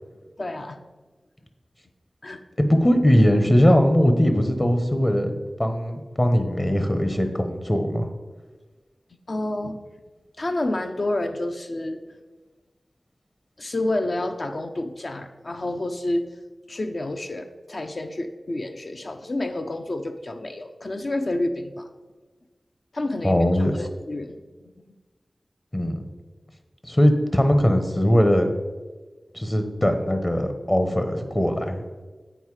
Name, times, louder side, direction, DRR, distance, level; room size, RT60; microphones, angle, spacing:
voice 1, 0.4-0.8 2.2-2.4 9.3-9.8 10.4-12.0 13.6-16.2 16.7-21.9 22.9-24.7, left 1 dB, 60° left, 7 dB, 0.6 m, -29 dB
voice 2, 2.6-5.3 5.6-8.1 23.2-23.7 25.7-26.0 26.8-28.5 29.3-31.8, equal, 30° left, 6 dB, 1.0 m, -20 dB
8.0 x 4.5 x 4.8 m, 1.3 s
wide cardioid pair, 55°, 0 cm